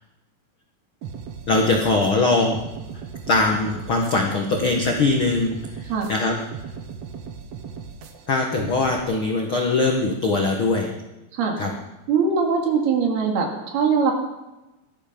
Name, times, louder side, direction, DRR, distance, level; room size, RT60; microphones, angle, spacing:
sound 1, 1.0-9.0, right 6 dB, 85° right, 1.4 m, -38 dB
voice 1, 1.5-2.6 3.3-6.4 8.3-10.9 11.6-11.7, left 3 dB, 80° left, 1 dB, 1.1 m, -21 dB
voice 2, 12.1-14.1, right 5 dB, 70° right, 2 dB, 4.2 m, -21 dB
18.0 x 13.5 x 5.2 m, 1.0 s
omnidirectional pair, 4.9 m